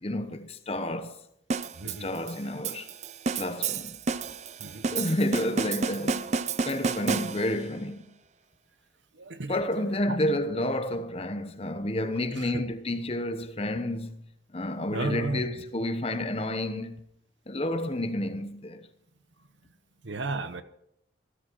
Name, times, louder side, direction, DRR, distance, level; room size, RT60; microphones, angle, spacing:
voice 1, 0.0-1.2 1.8-2.9 3.3-4.0 4.6-6.4 6.6-8.1 9.5-14.3 14.5-17.0 17.5-18.9, left 1 dB, 30° left, 1.0 m, -30 dB
sound 1, 1.5-7.7, right 4 dB, 35° right, 0.5 m, -31 dB
voice 2, 1.7-2.1 4.6-4.9 9.1-9.6 9.9-10.2 12.3-12.6 14.9-15.4 20.0-20.6, right 2 dB, 75° right, 1.1 m, -34 dB
17.5 x 13.5 x 4.6 m
head